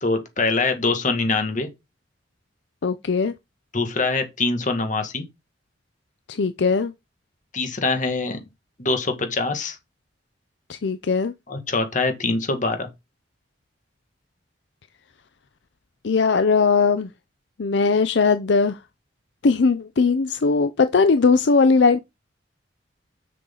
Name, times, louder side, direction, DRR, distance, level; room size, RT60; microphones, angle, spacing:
voice 1, 0.0-1.7 3.7-5.3 7.5-8.4 8.8-9.8 11.5-12.9, left 3 dB, 45° left, 1.8 m, -24 dB
voice 2, 2.8-3.3 6.3-6.9 10.7-11.3 16.0-17.1 17.6-18.8 19.4-22.0, left 4 dB, 70° left, 0.5 m, -19 dB
6.8 x 6.5 x 3.9 m
head